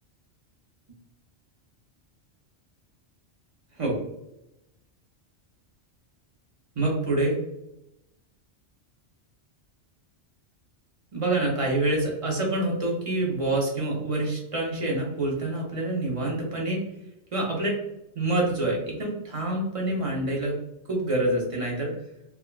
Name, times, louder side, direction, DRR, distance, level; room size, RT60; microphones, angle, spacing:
voice 1, 6.8-7.4 11.1-16.8 17.3-17.8 18.1-20.6 20.9-21.9, right 2 dB, 45° right, -2 dB, 0.5 m, -26 dB
3.4 x 2.2 x 2.2 m, 0.87 s
omnidirectional pair, 1.2 m